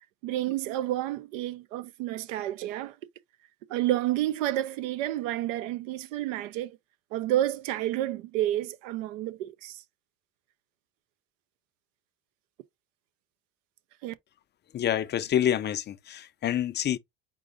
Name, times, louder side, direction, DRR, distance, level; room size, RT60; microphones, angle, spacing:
voice 1, 0.2-2.9 3.7-6.8 7.1-9.8 14.0-14.1, right 13 dB, 75° right, 0.7 m, -30 dB
voice 2, 14.7-17.0, left 10 dB, 30° left, 0.5 m, -27 dB
4.5 x 2.6 x 3.7 m
supercardioid pair, 95°, 38 cm